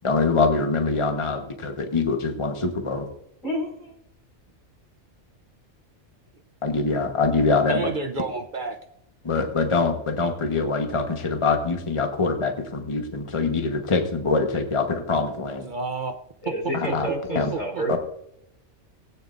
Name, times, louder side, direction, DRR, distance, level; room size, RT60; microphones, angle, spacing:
voice 1, 0.0-3.1 6.6-7.9 9.2-15.6 16.7-17.1 17.3-17.5 17.9-18.0, left 4 dB, 25° left, 5 dB, 1.2 m, -24 dB
voice 2, 3.4-4.0 16.4-18.0, right 1 dB, 90° left, -3 dB, 4.9 m, -29 dB
voice 3, 7.7-8.8 15.6-16.2 17.5-17.8, right 3 dB, 50° right, 7 dB, 0.7 m, -30 dB
19.0 x 9.2 x 2.6 m, 0.75 s
omnidirectional pair, 1.3 m